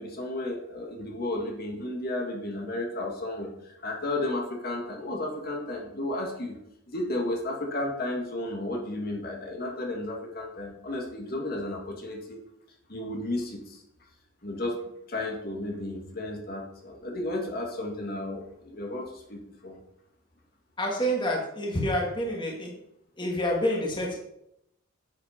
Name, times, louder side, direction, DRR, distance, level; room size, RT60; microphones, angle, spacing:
voice 1, 0.0-6.6 6.9-12.4 12.9-13.8 14.4-14.8 15.1-19.8, left 1 dB, 50° left, 0 dB, 2.0 m, -33 dB
voice 2, 20.8-22.7 23.2-24.2, equal, 25° left, -1 dB, 1.9 m, -28 dB
10.5 x 8.0 x 4.4 m, 0.78 s
head